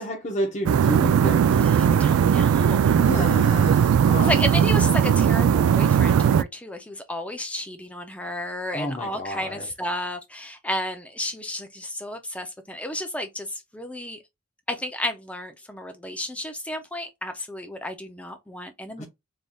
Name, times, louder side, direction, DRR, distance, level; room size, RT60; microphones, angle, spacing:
voice 1, 0.0-2.2 3.0-4.3 8.7-9.7 19.0-19.1, equal, 35° left, 0.9 m, -31 dB
sound 1, 0.7-6.4, right 8 dB, 85° right, 0.3 m, -19 dB
voice 2, 1.6-2.9 4.2-14.2 14.7-19.1, left 1 dB, 5° left, 0.4 m, -32 dB
4.1 x 3.3 x 2.2 m
head